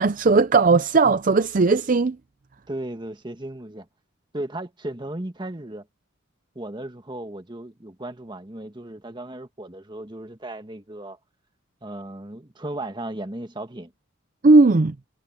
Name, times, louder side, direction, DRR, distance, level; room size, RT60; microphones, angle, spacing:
voice 1, 0.0-2.2 14.4-14.9, right 3 dB, 40° right, 0.5 m, -17 dB
voice 2, 2.7-3.9 4.3-5.9 6.5-11.2 11.8-13.9, right 1 dB, 25° right, 1.4 m, -35 dB
head